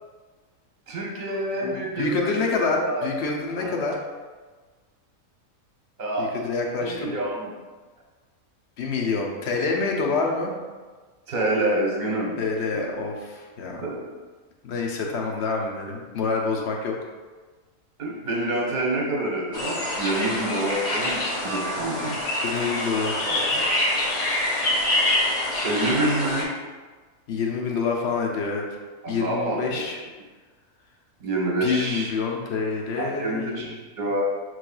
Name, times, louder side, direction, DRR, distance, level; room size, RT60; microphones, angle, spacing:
voice 1, 0.9-2.3 2.6-3.1 3.6-3.7 6.0-6.3 6.8-7.5 11.3-12.4 12.7-12.8 13.8-14.1 18.0-22.2 23.3-23.7 25.6-26.5 29.0-29.8 31.2-32.1 33.0-34.2, right 1 dB, 40° right, -3 dB, 0.9 m, -27 dB
voice 2, 1.6-3.9 6.2-7.1 8.8-10.5 12.4-13.8 14.6-17.0 22.4-23.2 27.3-28.6 29.1-30.0 31.6-33.7, left 4 dB, 60° left, 0 dB, 0.9 m, -27 dB
sound 1, 19.5-26.4, left 1 dB, 35° left, 1.0 m, -25 dB
6.6 x 3.2 x 2.3 m, 1.3 s
omnidirectional pair, 1.5 m